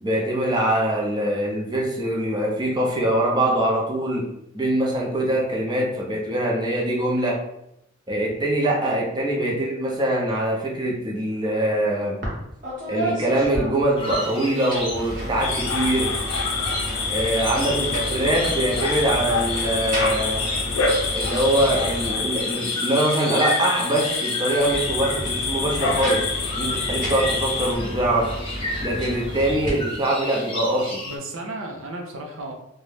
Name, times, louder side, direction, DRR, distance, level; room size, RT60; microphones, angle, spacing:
voice 1, 0.0-4.2 4.5-7.4 8.1-12.2 12.9-16.1 17.1-20.5 21.1-26.2 26.5-28.3 28.8-31.0, right 1 dB, 20° right, -3 dB, 0.6 m, -23 dB
voice 2, 9.4-9.7 17.6-18.7 31.1-32.5, right 2 dB, 80° right, 2 dB, 0.6 m, -35 dB
sound 1, 12.2-12.4 12.6-14.2 14.6-22.7 24.4-29.7, equal, 45° right, 1.0 m, -32 dB
sound 2, 14.0-31.2, left 1 dB, 25° left, 0.7 m, -34 dB
sound 3, 15.4-27.7, left 4 dB, 80° left, 0.5 m, -27 dB
2.6 x 2.2 x 3.2 m, 0.81 s
head